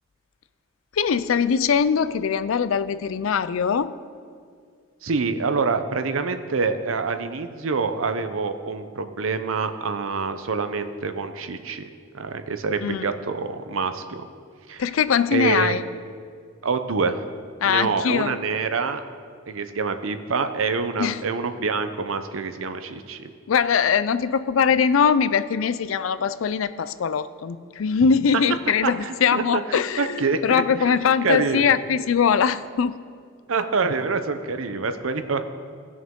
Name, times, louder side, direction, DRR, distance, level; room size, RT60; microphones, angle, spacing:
voice 1, 0.9-3.9 12.8-13.0 14.8-15.8 17.6-18.4 21.0-21.2 23.5-32.9, left 6 dB, 75° left, 14 dB, 0.4 m, -22 dB
voice 2, 5.0-14.3 14.7-14.8 15.3-15.8 16.6-17.3 17.6-19.0 19.5-23.3 28.8-30.9 31.2-31.7 33.5-35.4, right 4 dB, 80° right, 9 dB, 0.7 m, -26 dB
18.5 x 6.2 x 3.7 m, 2.1 s
head